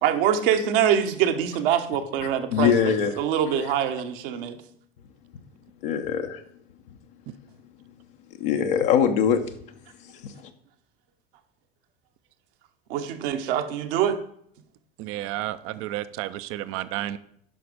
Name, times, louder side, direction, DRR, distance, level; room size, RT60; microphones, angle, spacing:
voice 1, 0.0-4.6 12.9-14.2, right 9 dB, 65° right, 7 dB, 1.2 m, -24 dB
voice 2, 2.5-3.1 5.8-6.4 8.4-9.4 10.2-10.3, left 8 dB, 65° left, 4 dB, 0.9 m, -22 dB
voice 3, 15.0-17.2, right 14 dB, 50° right, 14 dB, 0.6 m, -31 dB
9.4 x 5.9 x 5.0 m, 0.68 s
figure-of-eight pair, 75°, 30 cm